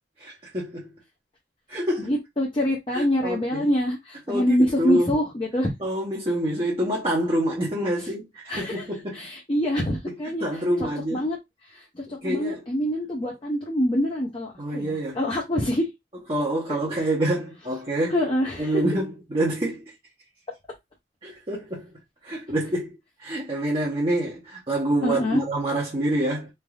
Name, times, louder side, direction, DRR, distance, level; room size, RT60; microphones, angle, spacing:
voice 1, 0.2-0.9 1.7-2.1 2.9-3.7 4.3-5.1 5.8-9.2 10.4-11.2 12.1-12.6 14.6-15.2 16.3-18.2 18.6-19.9 21.2-21.9 22.2-26.5, right 1 dB, 30° right, 0.8 m, -27 dB
voice 2, 2.0-5.7 8.0-8.1 8.5-8.9 9.1-10.4 10.8-11.4 11.6-15.9 16.9-17.1 18.1-18.8 25.0-25.4, equal, 25° left, 0.6 m, -25 dB
3.3 x 2.5 x 2.3 m
head